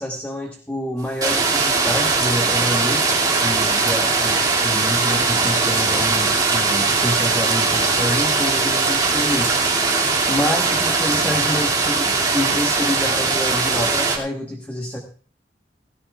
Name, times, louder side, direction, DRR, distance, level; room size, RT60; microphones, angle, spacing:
voice 1, 0.0-3.0 3.4-9.9 10.3-15.0, left 1 dB, 10° left, 1 dB, 1.3 m, -27 dB
sound 1, 1.2-14.2, right 4 dB, 25° right, 2.4 m, -20 dB
17.5 x 16.5 x 2.4 m, 0.40 s
head